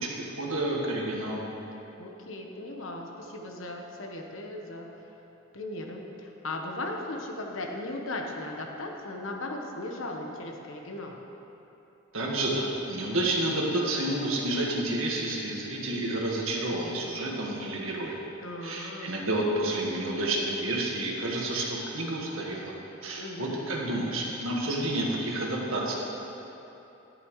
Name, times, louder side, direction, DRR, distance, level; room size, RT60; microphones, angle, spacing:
voice 1, 0.0-1.4 12.1-18.2 18.6-22.7 23.0-25.9, right 1 dB, 90° right, -2 dB, 1.7 m, -30 dB
voice 2, 2.0-4.9 5.5-11.2 18.4-19.1 23.1-23.7, left 2 dB, 75° left, 1 dB, 1.2 m, -37 dB
12.5 x 10.5 x 3.2 m, 3.0 s
head